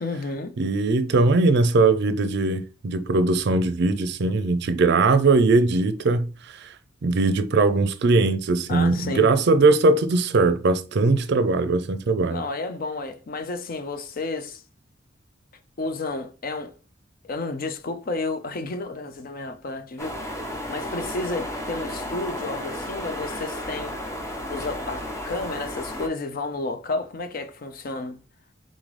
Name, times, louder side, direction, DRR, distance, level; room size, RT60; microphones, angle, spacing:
voice 1, 0.0-0.5 8.7-9.3 12.3-14.6 15.8-16.7 17.2-20.2 20.7-24.0 24.5-28.2, left 3 dB, 50° left, 0.5 m, -31 dB
voice 2, 0.6-6.3 6.6-6.7 7.0-12.4, right 3 dB, 60° right, 0.5 m, -20 dB
sound 1, 20.0-26.1, left 1 dB, 15° left, 0.8 m, -33 dB
3.8 x 3.8 x 3.3 m
head